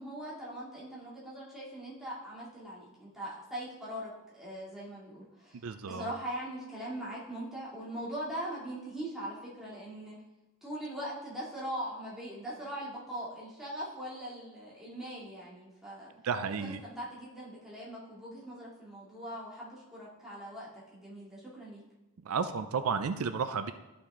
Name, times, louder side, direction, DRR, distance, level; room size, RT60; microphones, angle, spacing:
voice 1, 0.0-5.5 5.9-10.2 10.6-16.1 16.6-21.8, right 1 dB, ahead, -8 dB, 2.6 m, -41 dB
voice 2, 5.5-6.1 16.2-16.8 22.2-23.7, right 5 dB, 75° right, 10 dB, 0.4 m, -32 dB
13.0 x 5.9 x 3.7 m, 1.0 s
head